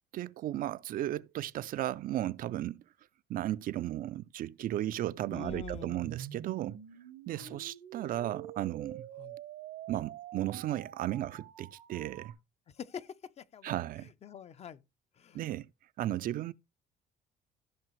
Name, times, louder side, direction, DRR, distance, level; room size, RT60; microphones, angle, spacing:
voice 1, 0.1-2.8 3.3-6.8 7.3-9.1 9.9-12.3 13.6-14.1 15.3-15.7 16.0-16.5, right 13 dB, 55° right, 0.4 m, -35 dB
voice 2, 5.3-6.0 7.4-7.6 9.2-9.3 12.8-13.7 14.2-14.8 15.2-15.4, left 8 dB, 40° left, 0.5 m, -45 dB
sound 1, 5.5-12.3, right 11 dB, 85° right, 1.1 m, -46 dB
14.5 x 5.6 x 3.1 m
cardioid pair, 110°, 17 cm